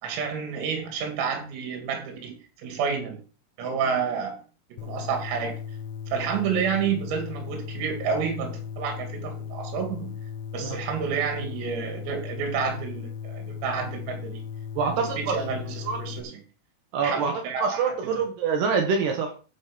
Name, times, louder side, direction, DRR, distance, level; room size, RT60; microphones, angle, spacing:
voice 1, 0.0-3.2 3.6-4.4 4.7-5.6 6.1-10.1 10.5-14.4 14.8-16.4 17.0-18.2, right 6 dB, 80° right, 3 dB, 5.2 m, -30 dB
sound 1, 4.8-16.2, left 7 dB, 75° left, 3.1 m, -37 dB
voice 2, 14.8-15.4 15.8-16.0 16.9-17.3 17.6-19.5, right 5 dB, 65° right, 3 dB, 3.1 m, -25 dB
13.5 x 5.2 x 5.3 m, 0.36 s
omnidirectional pair, 6.0 m